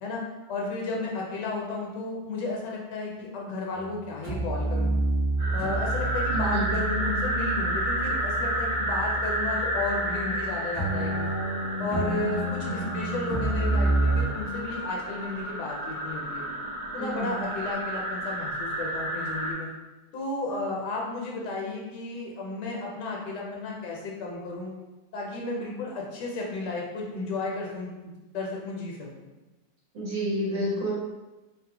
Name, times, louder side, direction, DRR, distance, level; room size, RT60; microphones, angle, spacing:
voice 1, 0.5-4.9 5.5-11.3 11.8-16.4 16.9-19.7 20.1-24.7 25.1-29.1, left 3 dB, 75° left, -2 dB, 1.2 m, -33 dB
sound 1, 3.7-4.0 4.2-10.5 10.7-14.3, right 2 dB, 40° right, 1.1 m, -29 dB
sound 2, 5.4-19.5, right 1 dB, 20° right, 0.5 m, -31 dB
voice 2, 6.3-6.7 12.1-12.9 17.0-17.3 29.9-30.9, equal, 80° right, -10 dB, 1.9 m, -30 dB
3.6 x 2.1 x 2.8 m, 1.1 s
omnidirectional pair, 2.0 m